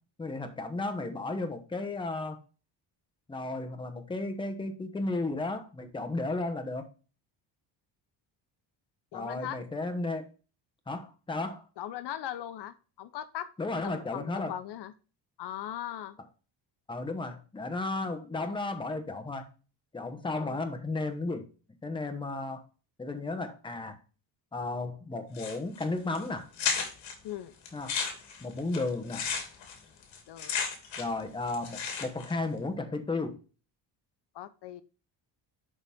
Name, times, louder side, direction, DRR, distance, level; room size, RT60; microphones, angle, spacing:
voice 1, 0.2-2.4 3.3-6.9 9.1-10.3 10.9-11.6 13.6-14.5 16.9-19.5 19.9-21.5 21.8-22.6 23.0-24.0 24.5-26.5 27.7-28.0 28.4-29.3 31.0-33.4, left 2 dB, 10° left, 1.0 m, -34 dB
voice 2, 9.1-9.6 11.8-13.5 13.8-14.9 15.4-16.2 20.4-20.6 27.2-27.5 30.3-30.6 34.3-34.8, left 11 dB, 60° left, 0.8 m, -39 dB
sound 1, 25.3-25.8 26.1-26.2 26.6-27.1 27.7-31.2 31.5-32.3, left 6 dB, 80° left, 2.6 m, -33 dB
11.0 x 3.9 x 3.5 m
cardioid pair, 155°, 45 cm